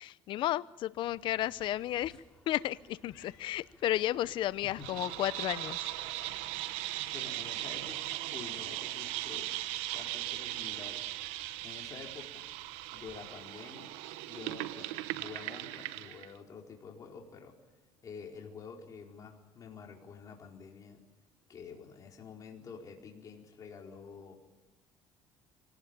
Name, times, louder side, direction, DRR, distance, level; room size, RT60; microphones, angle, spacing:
voice 1, 0.0-5.9, left 13 dB, 60° left, 16 dB, 0.7 m, -33 dB
sound 1, 1.0-13.3, left 1 dB, 5° left, 5.0 m, -62 dB
Cat, 3.1-3.9 4.2-4.5 5.5-6.0 6.7-6.8 7.2-8.2, left 12 dB, 90° left, 4.1 m, -59 dB
sound 2, 4.8-16.3, right 16 dB, 85° right, 0.9 m, -38 dB
voice 2, 7.1-9.6 9.9-11.1 11.6-12.5 12.9-14.0 14.3-17.5 18.0-21.0 21.5-24.3, left 5 dB, 40° left, 0 dB, 4.5 m, -48 dB
25.0 x 18.5 x 9.0 m, 1.1 s
cardioid pair, 110°, 9 cm